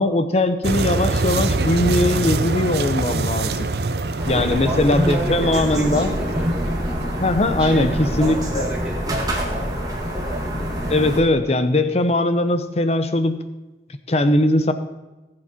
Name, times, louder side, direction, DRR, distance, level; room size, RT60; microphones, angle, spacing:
voice 1, 0.0-3.7 4.2-6.2 7.2-8.6 10.9-13.4 14.1-14.7, left 1 dB, 35° left, 10 dB, 0.8 m, -20 dB
sound 1, 0.6-7.2, right 3 dB, 65° right, 0.7 m, -24 dB
sound 2, 4.2-11.2, equal, 20° right, 1.9 m, -25 dB
voice 2, 4.3-6.5 7.6-9.7 10.1-10.5, right 1 dB, 5° right, -9 dB, 3.0 m, -31 dB
18.0 x 7.8 x 4.3 m, 1.1 s
head